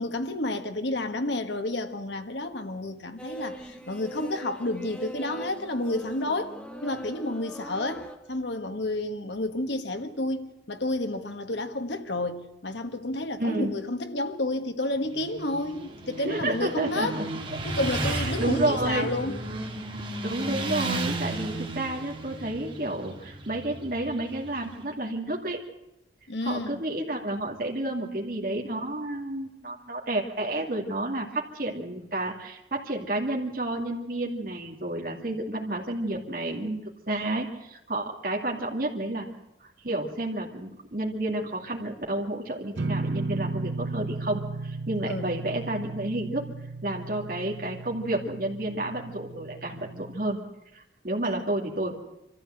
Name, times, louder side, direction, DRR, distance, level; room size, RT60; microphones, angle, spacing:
voice 1, 0.0-6.5 6.8-17.2 17.6-19.4 26.3-26.8 45.1-45.3 51.3-51.5, left 2 dB, 75° left, 1.6 m, -30 dB
sound 1, 3.2-8.2, right 1 dB, 5° left, 1.6 m, -41 dB
voice 2, 13.4-13.7 16.2-17.6 18.0-19.1 20.2-25.6 26.4-36.8 37.1-39.3 39.6-46.5 46.8-50.4 50.7-51.9, right 1 dB, 50° right, 2.5 m, -30 dB
Motorcycle, 15.0-24.8, right 2 dB, 30° right, 2.0 m, -34 dB
sound 2, 42.8-50.3, right 3 dB, 85° right, 0.8 m, -35 dB
24.5 x 14.0 x 7.9 m
head